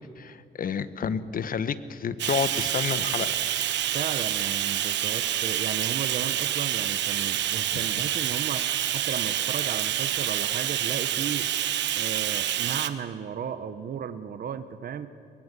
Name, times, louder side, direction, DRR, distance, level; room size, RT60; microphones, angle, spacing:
voice 1, 0.2-3.4 7.7-7.8, left 7 dB, 50° left, 14 dB, 1.1 m, -30 dB
Bathtub (filling or washing), 2.2-12.9, right 11 dB, 80° right, 1.1 m, -27 dB
voice 2, 3.9-8.7 8.9-11.5 12.0-15.1, right 8 dB, 55° right, 11 dB, 1.0 m, -35 dB
23.0 x 21.5 x 8.2 m, 2.5 s
cardioid pair, 105°, 18 cm